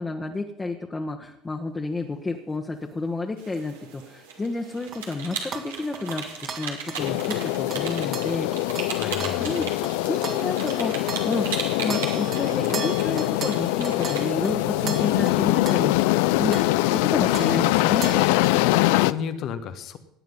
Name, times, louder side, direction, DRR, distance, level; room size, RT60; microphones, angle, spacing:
voice 1, 0.0-8.5 9.4-9.7 10.0-11.5 11.8-16.6 16.9-18.2, left 3 dB, 20° left, 2 dB, 1.4 m, -30 dB
sound 1, 3.4-14.5, right 5 dB, 85° right, 2.1 m, -37 dB
sound 2, 4.9-11.6 11.9-16.2 16.5-17.1 17.3-18.6, right 6 dB, 50° right, 2.0 m, -38 dB
sound 3, 7.0-19.1, left 18 dB, 75° left, 0.4 m, -23 dB
voice 2, 8.9-9.7 18.9-20.0, left 7 dB, 55° left, 10 dB, 1.3 m, -33 dB
17.5 x 9.3 x 5.5 m, 0.86 s
hypercardioid pair, 70°, 0 cm